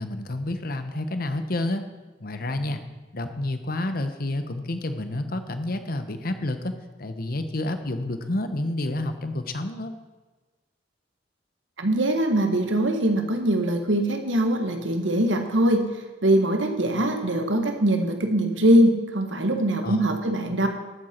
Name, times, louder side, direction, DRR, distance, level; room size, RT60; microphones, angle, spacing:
voice 1, 0.0-1.8 2.2-2.8 3.1-6.7 7.0-9.9 19.8-20.0, left 1 dB, 50° left, 9 dB, 1.0 m, -29 dB
voice 2, 11.8-20.7, right 1 dB, 85° right, 5 dB, 1.6 m, -22 dB
13.0 x 9.1 x 4.5 m, 1.2 s
head